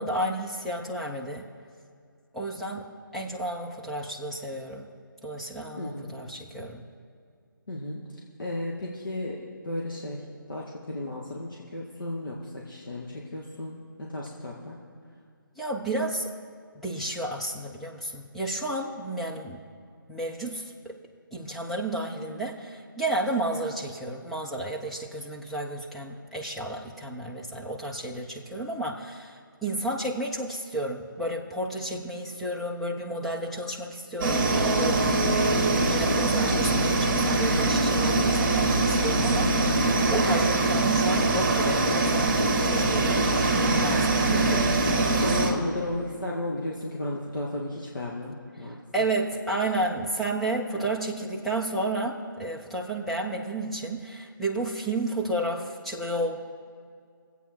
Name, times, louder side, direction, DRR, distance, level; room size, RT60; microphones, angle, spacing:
voice 1, 0.0-1.5 2.3-4.9 5.2-6.8 15.6-16.3 16.8-19.6 20.1-21.0 21.3-35.2 35.7-43.3 43.8-44.3 48.6-56.4, right 1 dB, ahead, -3 dB, 0.3 m, -32 dB
voice 2, 5.8-6.1 7.7-8.0 8.4-9.4 9.6-10.2 10.5-14.8 31.9-32.0 35.2-35.7 43.3-43.8 44.3-48.8 50.7-50.8, left 1 dB, 65° left, -3 dB, 1.7 m, -34 dB
sound 1, 34.2-45.5, right 2 dB, 25° right, 1.7 m, -23 dB
22.0 x 8.2 x 4.5 m, 2.2 s
figure-of-eight pair, 155°, 12 cm